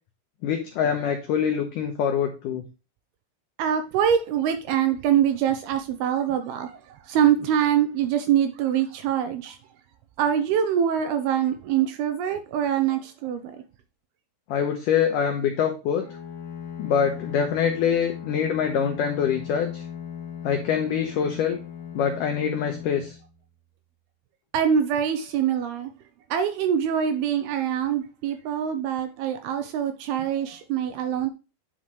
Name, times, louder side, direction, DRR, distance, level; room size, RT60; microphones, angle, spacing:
voice 1, 0.4-2.6 14.5-16.0 16.8-19.8 20.4-21.6 21.9-23.2, left 8 dB, 85° left, 1.8 m, -24 dB
voice 2, 3.6-9.6 10.2-13.6 24.5-25.9 26.3-31.3, right 9 dB, 85° right, 2.4 m, -24 dB
Bowed string instrument, 16.0-23.9, left 8 dB, 55° left, 2.0 m, -38 dB
9.9 x 5.8 x 3.1 m
omnidirectional pair, 5.0 m